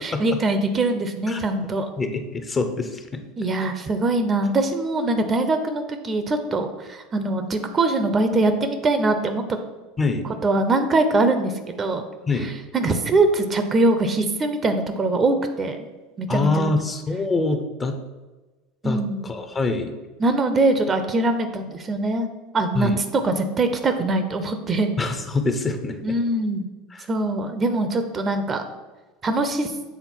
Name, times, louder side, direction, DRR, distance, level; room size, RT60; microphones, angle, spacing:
voice 1, 0.0-1.9 3.4-9.6 10.4-12.0 12.4-15.8 16.2-16.7 18.8-19.3 20.2-22.3 22.5-25.0 26.0-26.7 27.1-28.6 29.2-29.7, right 2 dB, 30° right, 8 dB, 0.7 m, -22 dB
voice 2, 2.0-3.2 10.0-10.3 12.3-12.5 16.3-18.0 18.8-19.9 22.7-23.0 25.0-26.1 26.9-27.1, left 3 dB, 25° left, 7 dB, 0.7 m, -25 dB
7.2 x 3.7 x 4.4 m, 1.2 s
hypercardioid pair, 80°, 0 cm